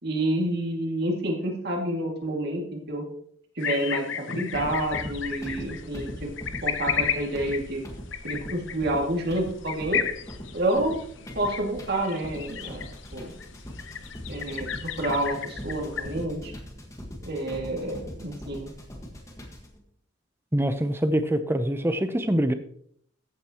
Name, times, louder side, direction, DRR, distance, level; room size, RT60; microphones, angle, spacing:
voice 1, 0.0-3.1 3.6-6.3 6.6-7.8 8.2-10.0 10.5-11.0 11.4-13.3 14.3-14.7 15.0-16.5 17.2-18.7, right 1 dB, 50° right, 1 dB, 2.2 m, -29 dB
sound 1, 3.6-16.2, left 7 dB, 65° left, 0.8 m, -34 dB
sound 2, 4.5-19.8, equal, 15° left, 1.5 m, -41 dB
voice 2, 20.5-22.5, right 1 dB, 10° right, 9 dB, 0.7 m, -24 dB
14.5 x 9.0 x 3.0 m, 0.64 s
head